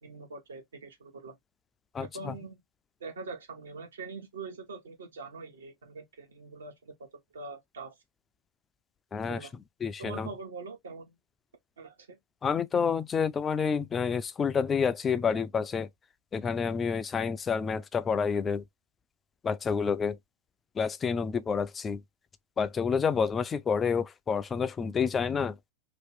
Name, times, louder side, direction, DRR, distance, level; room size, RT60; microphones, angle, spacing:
voice 1, 0.0-1.4 2.0-2.6 3.0-6.9 7.3-7.9 9.1-9.5 10.0-11.2 11.8-12.2, right 4 dB, 65° right, 1.0 m, -43 dB
voice 2, 1.9-2.3 9.1-9.4 9.8-10.3 12.4-15.9 16.3-18.6 19.4-20.2 20.8-22.0 22.6-25.6, left 6 dB, 20° left, 0.3 m, -29 dB
2.8 x 2.4 x 3.5 m
figure-of-eight pair, 90°, 0 cm